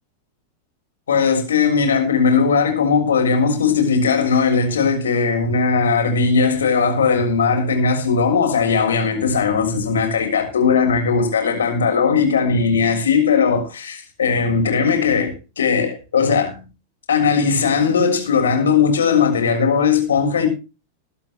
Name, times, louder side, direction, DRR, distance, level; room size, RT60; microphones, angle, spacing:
voice 1, 1.1-16.6 17.1-20.5, left 5 dB, 65° left, 6.7 m, -18 dB
22.5 x 11.5 x 3.2 m
figure-of-eight pair, 90°, 0 cm